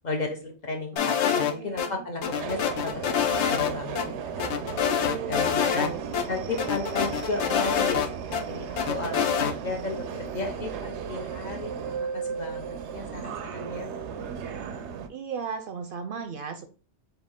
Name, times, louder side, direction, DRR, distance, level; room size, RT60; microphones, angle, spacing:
voice 1, 0.0-4.8 5.3-5.9 6.3-13.9, left 3 dB, 45° left, 2 dB, 0.8 m, -34 dB
voice 2, 0.9-2.0 4.8-6.0 15.1-16.7, right 6 dB, 60° right, 7 dB, 0.7 m, -37 dB
sound 1, 1.0-1.9 2.2-3.7 4.0-4.1 4.4-5.9 6.1-6.2 6.6-8.4 8.8-9.5, left 8 dB, 80° left, 0.9 m, -26 dB
Subway metro underground, 2.3-15.1, right 6 dB, 90° right, 0.9 m, -35 dB
4.6 x 2.7 x 3.6 m, 0.35 s
omnidirectional pair, 1.1 m